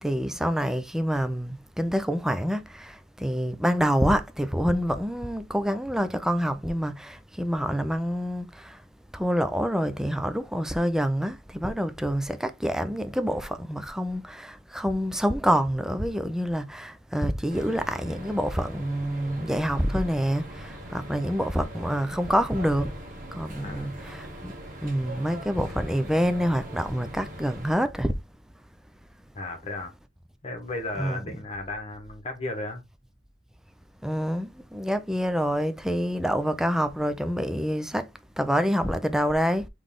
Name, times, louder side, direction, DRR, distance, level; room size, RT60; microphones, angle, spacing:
voice 1, 0.0-8.8 9.1-22.9 23.3-24.5 24.8-28.1 31.0-31.2 34.0-39.7, equal, 5° right, 0.4 m, -27 dB
sound 1, 17.5-27.7, equal, 45° right, 1.5 m, -41 dB
voice 2, 23.6-23.9 29.3-29.9 30.4-32.8, left 2 dB, 35° left, 1.3 m, -35 dB
4.0 x 3.2 x 3.6 m
head